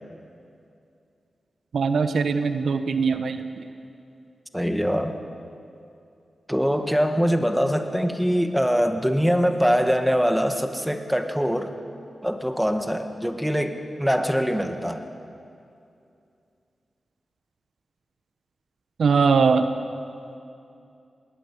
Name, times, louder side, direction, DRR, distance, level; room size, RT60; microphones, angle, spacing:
voice 1, 1.7-3.4 19.0-19.6, right 5 dB, 85° right, 9 dB, 1.0 m, -21 dB
voice 2, 4.5-5.1 6.5-11.7 12.2-15.0, equal, ahead, 6 dB, 1.7 m, -23 dB
19.5 x 19.5 x 8.5 m, 2.6 s
cardioid pair, 65°, 0 cm